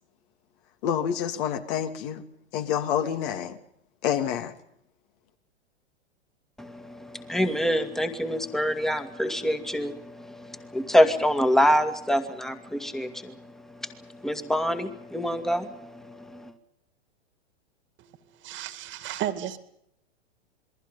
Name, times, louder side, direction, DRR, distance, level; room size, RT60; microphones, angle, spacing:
voice 1, 0.8-2.2 2.5-3.6 4.0-4.5, left 9 dB, 50° left, 7 dB, 2.8 m, -28 dB
voice 2, 6.6-13.3 13.8-16.5, equal, ahead, 9 dB, 2.2 m, -26 dB
voice 3, 18.4-19.6, right 12 dB, 35° right, 11 dB, 2.4 m, -32 dB
28.5 x 22.0 x 5.5 m, 0.76 s
hypercardioid pair, 110°, 33 cm